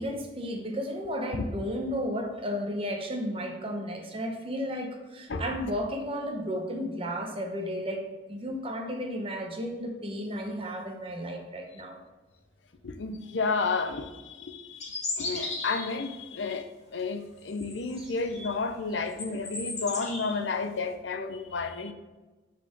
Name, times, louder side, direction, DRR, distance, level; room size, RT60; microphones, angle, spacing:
voice 1, 0.0-12.0 17.9-18.1, equal, 30° right, 3 dB, 0.9 m, -33 dB
voice 2, 12.8-14.9 15.2-16.7 16.9-21.9, left 4 dB, 80° left, 8 dB, 0.6 m, -31 dB
sound 1, 14.8-16.0 17.5-18.6 19.0-20.4, left 3 dB, 40° left, 1.7 m, -36 dB
5.7 x 4.2 x 5.9 m, 1.2 s
head